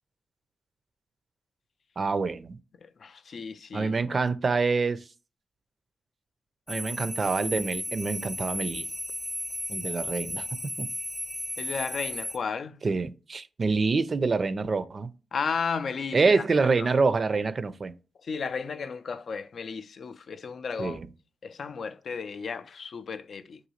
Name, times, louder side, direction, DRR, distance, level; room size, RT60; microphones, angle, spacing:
voice 1, 2.0-2.6 3.7-5.0 6.7-8.9 9.7-10.5 10.8-10.9 12.8-15.1 16.1-17.9 20.8-21.1, right 4 dB, 45° right, 0.4 m, -26 dB
voice 2, 2.8-4.2 11.6-12.8 15.3-16.3 16.8-16.9 18.2-21.0 21.4-23.6, left 5 dB, 65° left, 0.3 m, -34 dB
sound 1, 6.7-12.4, equal, 5° left, 0.5 m, -34 dB
3.8 x 2.7 x 2.9 m
cardioid pair, 80°, 0 cm